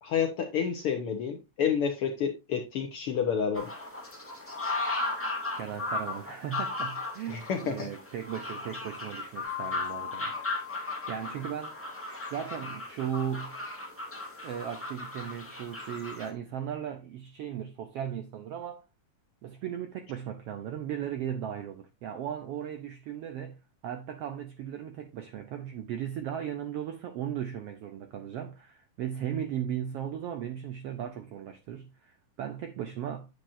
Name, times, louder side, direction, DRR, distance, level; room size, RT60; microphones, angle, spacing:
voice 1, 0.0-3.7 7.3-7.9, left 7 dB, 75° left, 1.3 m, -29 dB
sound 1, 3.5-16.3, left 2 dB, 5° left, 1.6 m, -36 dB
voice 2, 5.6-10.3 10.8-11.8 12.3-13.6 14.4-18.8 19.4-33.3, right 9 dB, 80° right, 1.3 m, -37 dB
Mallet percussion, 9.4-12.1, left 19 dB, 55° right, 4.7 m, -41 dB
8.7 x 7.9 x 2.6 m
omnidirectional pair, 3.6 m